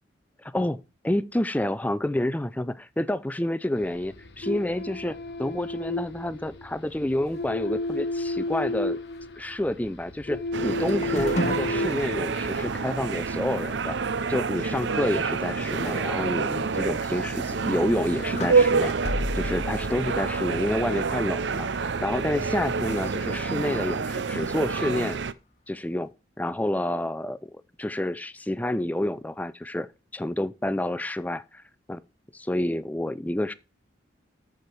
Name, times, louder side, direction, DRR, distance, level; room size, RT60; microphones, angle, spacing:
voice 1, 0.4-9.0 9.4-14.0 14.3-18.9 19.3-25.2 25.7-26.1 26.4-29.9 30.1-31.6 31.9-32.0 32.3-33.5, left 1 dB, 10° left, 0.4 m, -29 dB
sound 1, 3.7-13.0, left 2 dB, 60° left, 1.1 m, -33 dB
sound 2, 10.5-25.3, right 4 dB, 70° right, 0.6 m, -28 dB
sound 3, 10.9-12.4 12.8-12.9 13.4-13.5 15.1-15.2 15.8-16.1 16.6-16.7 17.7-20.9 21.7-22.3 22.8-23.2, left 1 dB, 35° left, 1.2 m, -35 dB
13.0 x 4.9 x 4.5 m
head